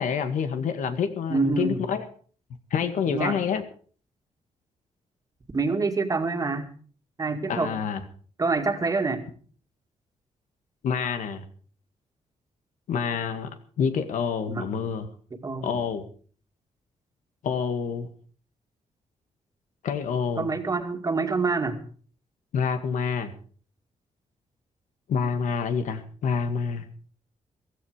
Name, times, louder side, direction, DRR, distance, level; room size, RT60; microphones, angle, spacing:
voice 1, 0.0-2.1 2.7-3.6 7.5-8.0 10.8-11.5 12.9-15.1 15.6-16.0 17.4-18.1 19.8-20.5 22.5-23.3 25.1-26.9, left 6 dB, 85° left, 9 dB, 2.0 m, -27 dB
voice 2, 1.3-1.8 3.1-3.4 5.5-6.7 7.2-7.7 8.4-9.2 14.5-14.7 15.3-15.8 20.4-21.8, right 4 dB, 25° right, 6 dB, 2.2 m, -26 dB
15.5 x 15.0 x 5.0 m, 0.43 s
wide cardioid pair, 140°, 13 cm